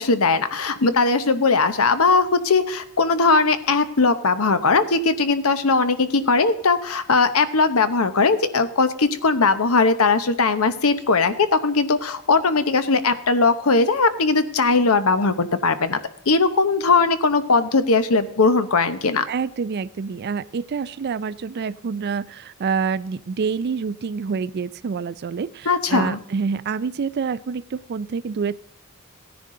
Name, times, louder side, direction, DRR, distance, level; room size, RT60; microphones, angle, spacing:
voice 1, 0.0-16.0 16.3-19.2 25.7-26.2, left 4 dB, 70° left, 12 dB, 0.9 m, -19 dB
voice 2, 19.3-28.5, right 5 dB, 50° right, 18 dB, 0.4 m, -27 dB
16.0 x 10.5 x 3.8 m, 0.70 s
head